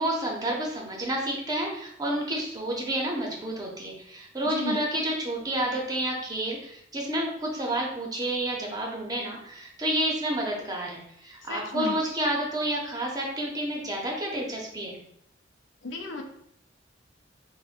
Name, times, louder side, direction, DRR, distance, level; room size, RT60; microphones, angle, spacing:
voice 1, 0.0-15.0, right 1 dB, 20° right, -1 dB, 0.6 m, -30 dB
voice 2, 4.4-4.8 11.5-12.0 15.8-16.2, left 2 dB, 90° left, 4 dB, 0.5 m, -33 dB
4.1 x 2.1 x 2.4 m, 0.72 s
head